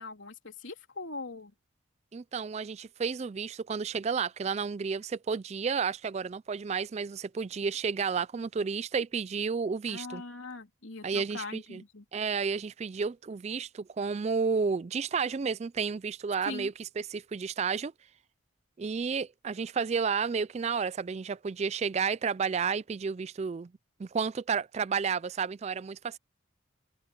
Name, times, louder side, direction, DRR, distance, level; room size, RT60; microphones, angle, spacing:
voice 1, 0.0-1.5 9.9-12.0 16.4-16.7, left 3 dB, 70° left, 3.3 m, -41 dB
voice 2, 2.1-10.2 11.0-11.8 12.1-17.9 18.8-23.7 24.0-26.2, right 5 dB, 35° right, 0.3 m, -31 dB
open air
head